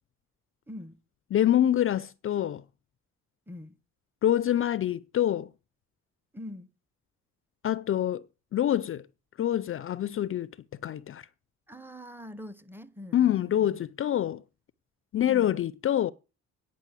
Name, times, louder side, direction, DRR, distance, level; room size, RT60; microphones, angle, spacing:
voice 1, 0.7-1.0 3.5-3.8 6.3-6.7 11.7-13.8 15.3-15.5, left 1 dB, 5° right, 1.0 m, -43 dB
voice 2, 1.3-2.6 4.2-5.5 7.6-8.2 8.5-9.0 9.4-10.5 10.8-11.3 13.1-14.4 15.1-16.1, left 11 dB, 45° left, 0.4 m, -26 dB
9.5 x 6.1 x 8.2 m
cardioid pair, 90°, 30 cm